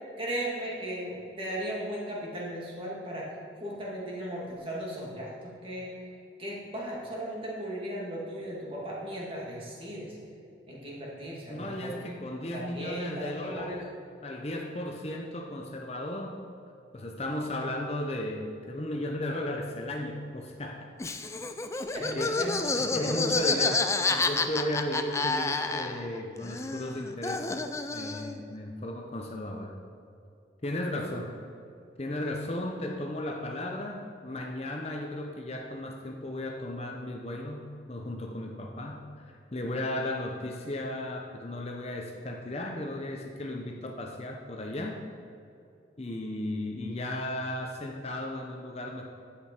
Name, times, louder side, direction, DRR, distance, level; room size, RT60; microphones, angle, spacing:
voice 1, 0.2-3.3 3.6-5.9 6.4-10.2 10.7-12.0 12.4-13.9 21.9-23.2, right 1 dB, 30° right, -4 dB, 2.1 m, -36 dB
voice 2, 11.5-13.9 14.2-16.4 16.9-20.9 22.1-22.5 22.9-29.7 30.6-31.3 32.0-39.3 39.5-45.0 46.0-49.1, left 1 dB, 35° left, 1 dB, 0.7 m, -35 dB
Laughter, 21.0-26.2 26.4-28.4, left 3 dB, 15° left, 0.4 m, -29 dB
10.5 x 8.6 x 4.5 m, 2.6 s
head